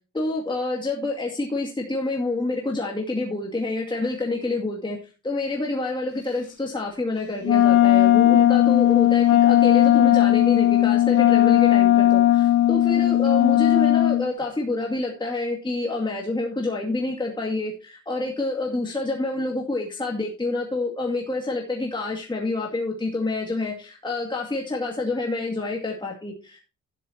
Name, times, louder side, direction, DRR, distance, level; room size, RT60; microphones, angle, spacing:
voice 1, 0.1-5.0 5.2-26.6, left 2 dB, 15° left, -1 dB, 2.4 m, -28 dB
Wind instrument woodwind instrument, 7.4-14.3, left 12 dB, 75° left, 1.8 m, -17 dB
12.5 x 10.5 x 2.9 m, 0.33 s
cardioid pair, 90°, 30 cm